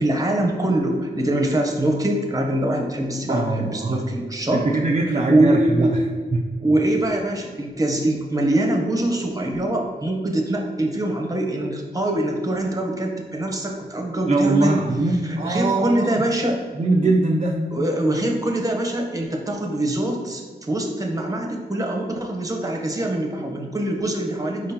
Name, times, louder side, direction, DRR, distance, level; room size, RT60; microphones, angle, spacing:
voice 1, 0.0-4.7 5.3-5.9 6.6-14.8 15.4-16.6 17.7-24.7, right 1 dB, 20° right, 1 dB, 0.8 m, -23 dB
voice 2, 3.3-4.0 4.5-6.0 6.3-6.4 14.3-16.2 16.8-17.6, right 2 dB, 40° right, -1 dB, 0.4 m, -21 dB
5.0 x 3.7 x 2.8 m, 1.5 s
wide cardioid pair, 75°, 17 cm